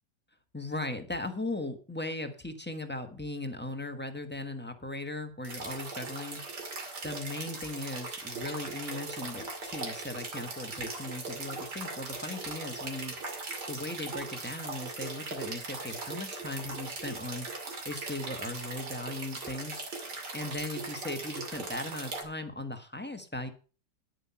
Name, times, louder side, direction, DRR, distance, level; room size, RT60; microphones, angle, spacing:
voice 1, 0.5-6.4 7.0-13.1 13.7-23.5, left 2 dB, 5° left, 7 dB, 1.1 m, -38 dB
sound 1, 5.4-22.2, right 3 dB, 70° right, 3.0 m, -39 dB
11.0 x 8.4 x 5.7 m, 0.37 s
omnidirectional pair, 1.9 m